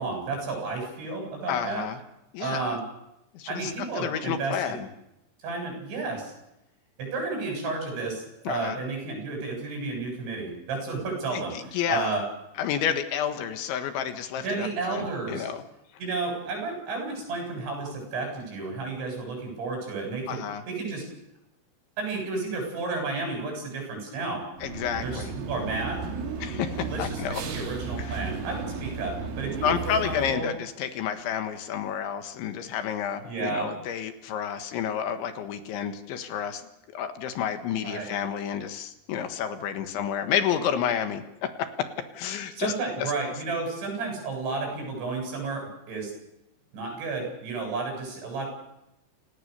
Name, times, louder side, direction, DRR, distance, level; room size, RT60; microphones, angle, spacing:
voice 1, 0.0-1.9 2.4-2.8 3.5-4.8 5.4-6.3 7.0-11.6 11.9-12.2 14.4-15.5 16.0-21.1 22.0-24.5 25.0-26.0 26.9-30.5 33.2-33.7 37.8-38.1 42.6-46.1 46.7-48.5, right 3 dB, 65° right, 2 dB, 10.5 m, -32 dB
voice 2, 1.5-2.0 2.3-2.8 3.4-4.9 8.5-8.8 11.3-12.2 12.6-15.6 20.3-20.6 24.6-25.3 26.4-27.4 28.0-28.3 29.6-41.9 42.1-42.7 43.0-43.1, left 8 dB, 70° left, 8 dB, 3.7 m, -30 dB
sound 1, 24.6-30.3, right 5 dB, 90° right, 5.4 m, -34 dB
29.5 x 17.0 x 6.9 m, 0.87 s
omnidirectional pair, 5.8 m